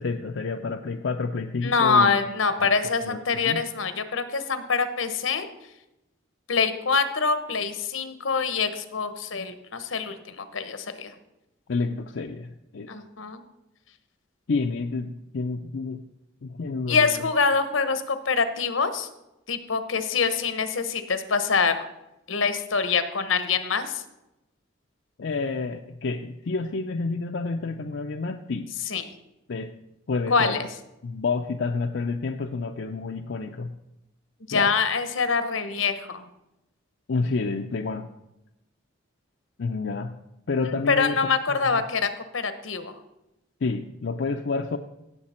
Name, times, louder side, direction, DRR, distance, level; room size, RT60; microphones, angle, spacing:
voice 1, 0.0-2.2 2.6-2.7 3.0-3.6 11.7-12.9 14.5-16.0 16.4-17.3 25.2-28.7 29.5-29.7 30.1-30.6 31.0-33.7 34.5-34.7 37.1-38.1 39.6-40.1 40.5-41.2 41.5-41.8 43.6-44.8, left 4 dB, 65° left, 5 dB, 0.5 m, -29 dB
voice 2, 1.6-5.5 6.5-11.1 12.9-13.4 16.9-19.1 19.5-21.9 22.3-24.0 28.9-29.0 30.3-30.7 34.5-36.2 40.7-42.9, left 5 dB, 85° left, 11 dB, 1.0 m, -25 dB
17.0 x 6.7 x 4.3 m, 0.91 s
head